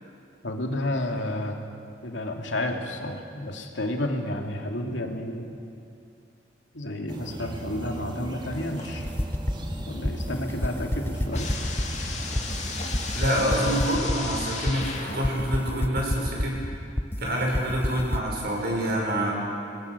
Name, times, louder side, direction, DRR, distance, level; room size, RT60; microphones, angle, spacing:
voice 1, 0.4-1.6 2.0-5.5 6.7-9.1 9.9-11.5, left 1 dB, 80° left, 2 dB, 2.6 m, -31 dB
sound 1, 7.1-13.3, right 1 dB, 25° right, 2.1 m, -36 dB
sound 2, 8.5-9.3 9.7-15.5, left 4 dB, 40° left, 2.6 m, -37 dB
sound 3, 9.0-18.3, left 1 dB, 10° left, 0.7 m, -29 dB
voice 2, 13.1-16.6 17.2-19.3, equal, 60° right, -2 dB, 6.5 m, -26 dB
27.0 x 20.5 x 6.9 m, 2.6 s
head